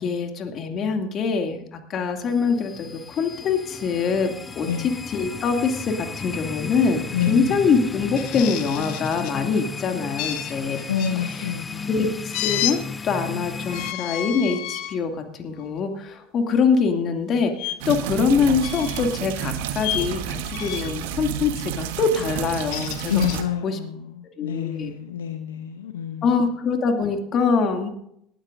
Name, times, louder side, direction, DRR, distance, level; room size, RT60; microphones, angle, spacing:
voice 1, 0.0-10.8 11.2-11.5 11.9-23.1 23.6-23.8 24.4-24.9 26.2-27.9, left 5 dB, 45° left, 4 dB, 2.3 m, -24 dB
sound 1, 2.2-13.9, left 4 dB, 25° left, 0.6 m, -35 dB
voice 2, 7.1-7.6 10.9-11.9 23.1-26.3, left 8 dB, 85° left, 7 dB, 0.9 m, -27 dB
sound 2, 8.1-9.4 10.2-11.1 12.3-12.8 13.6-15.0 15.6-15.8 17.6-17.7 18.6-19.2 19.8-20.1 20.5-21.0 22.4-23.4, left 13 dB, 65° left, 1.1 m, -31 dB
sound 3, 17.8-23.4, right 9 dB, 70° right, 1.2 m, -30 dB
19.0 x 13.0 x 2.6 m, 0.72 s
hypercardioid pair, 70°, 0 cm